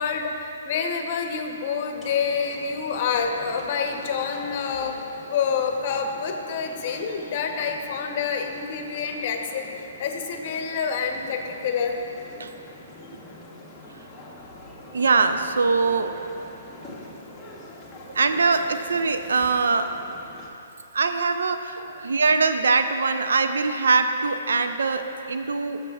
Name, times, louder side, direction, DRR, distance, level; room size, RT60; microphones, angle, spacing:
voice 1, 0.0-5.0 5.3-12.0, left 6 dB, 45° left, 4 dB, 0.8 m, -27 dB
sound 1, 2.0-20.5, left 1 dB, 10° left, 1.1 m, -44 dB
voice 2, 14.9-16.3 18.1-19.9 20.9-25.8, right 4 dB, 85° right, 8 dB, 0.5 m, -22 dB
15.5 x 6.6 x 2.3 m, 2.8 s
hypercardioid pair, 145°, 0 cm